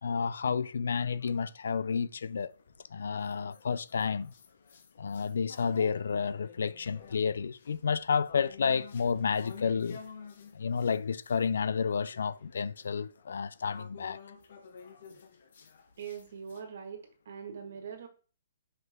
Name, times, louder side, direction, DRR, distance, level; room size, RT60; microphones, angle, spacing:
voice 1, 0.0-2.5 2.9-4.3 5.0-10.0 10.5-14.2, left 6 dB, 75° left, 0.4 m, -31 dB
sound 1, 0.6-2.0 2.6-11.5 11.9-16.6, left 6 dB, 50° left, 1.2 m, -52 dB
voice 2, 16.0-18.1, right 7 dB, 50° right, 1.8 m, -42 dB
5.7 x 5.6 x 3.6 m
hypercardioid pair, 175°, 0 cm